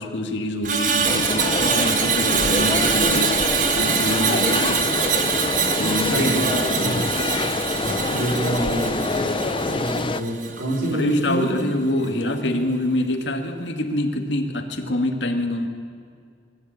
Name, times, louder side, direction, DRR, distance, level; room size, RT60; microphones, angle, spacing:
voice 1, 0.0-3.4 3.8-4.8 5.8-7.1 10.9-15.7, left 1 dB, 85° left, 4 dB, 2.1 m, -26 dB
Screech, 0.6-11.0 11.3-11.6, right 6 dB, 45° right, 1.5 m, -24 dB
sound 1, 1.0-10.2, left 3 dB, 30° left, 0.6 m, -25 dB
voice 2, 6.1-7.1 7.8-11.5, right 1 dB, 70° right, -2 dB, 4.5 m, -27 dB
22.5 x 14.0 x 8.8 m, 2.2 s
head